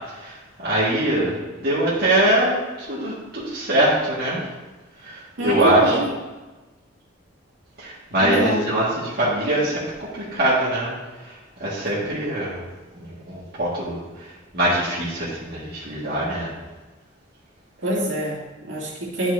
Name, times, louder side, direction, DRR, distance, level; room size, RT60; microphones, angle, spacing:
voice 1, 0.6-1.4 1.6-4.4 5.0-6.0 7.8-10.9 11.6-12.6 13.0-14.0 14.5-16.5, right 1 dB, 50° right, -9 dB, 1.8 m, -22 dB
voice 2, 5.4-6.0 8.2-8.6 17.8-19.3, right 1 dB, 70° right, -6 dB, 2.4 m, -25 dB
11.5 x 6.0 x 2.7 m, 1.2 s
head